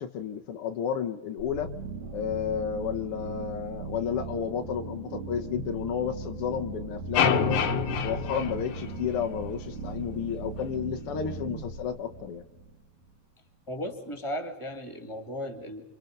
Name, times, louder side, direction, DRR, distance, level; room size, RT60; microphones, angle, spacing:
voice 1, 0.0-1.7 2.1-7.6 8.0-12.4, left 8 dB, 80° left, 4 dB, 1.2 m, -32 dB
sound 1, 1.4-13.1, right 5 dB, 60° right, 2.8 m, -39 dB
sound 2, 7.1-9.4, left 6 dB, 60° left, 1.8 m, -27 dB
voice 2, 13.7-15.8, equal, 10° left, 6 dB, 2.0 m, -36 dB
28.5 x 25.5 x 5.3 m, 1.0 s
omnidirectional pair, 4.0 m